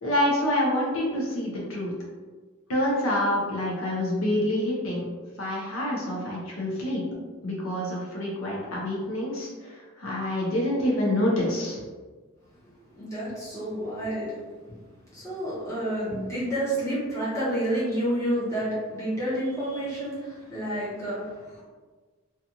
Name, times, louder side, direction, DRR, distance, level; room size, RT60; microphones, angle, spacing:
voice 1, 0.0-1.9 2.7-5.1 5.4-7.0 7.4-11.8, left 1 dB, 75° left, -3 dB, 0.6 m, -27 dB
voice 2, 12.9-14.3 15.1-21.6, right 1 dB, 15° left, -10 dB, 1.0 m, -29 dB
2.5 x 2.3 x 2.8 m, 1.4 s
head